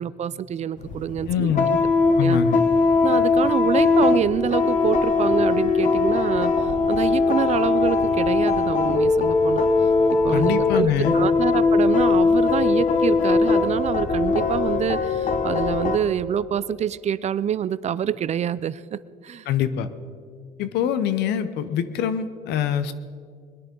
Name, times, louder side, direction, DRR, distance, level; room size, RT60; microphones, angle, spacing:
voice 1, 0.0-1.8 2.2-2.4 3.0-9.7 10.1-19.5, right 9 dB, 40° right, 17 dB, 0.4 m, -26 dB
sound 1, 0.8-16.0, left 4 dB, 50° left, 1.4 m, -20 dB
voice 2, 1.3-1.7 2.2-2.6 10.3-11.1 19.5-19.9 20.6-22.9, left 9 dB, 80° left, 12 dB, 0.9 m, -24 dB
21.5 x 10.0 x 5.3 m, 2.1 s
cardioid pair, 110°, 17 cm